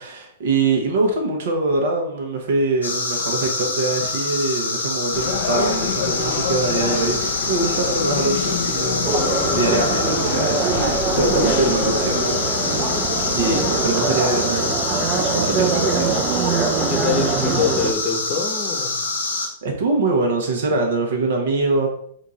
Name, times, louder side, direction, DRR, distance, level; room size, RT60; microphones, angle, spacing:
voice 1, 0.0-9.2 9.5-12.9 13.3-16.4 19.6-21.9, right 3 dB, 65° right, 2 dB, 1.2 m, -23 dB
sound 1, 2.8-19.5, left 3 dB, 85° left, 0.9 m, -26 dB
sound 2, 5.1-13.9, left 7 dB, 55° left, 0.5 m, -27 dB
sound 3, 9.0-17.9, right 5 dB, 30° right, 0.6 m, -23 dB
voice 2, 16.8-19.0, left 5 dB, 35° left, 4 dB, 1.0 m, -25 dB
4.4 x 2.6 x 4.0 m, 0.64 s
hypercardioid pair, 110°, 0 cm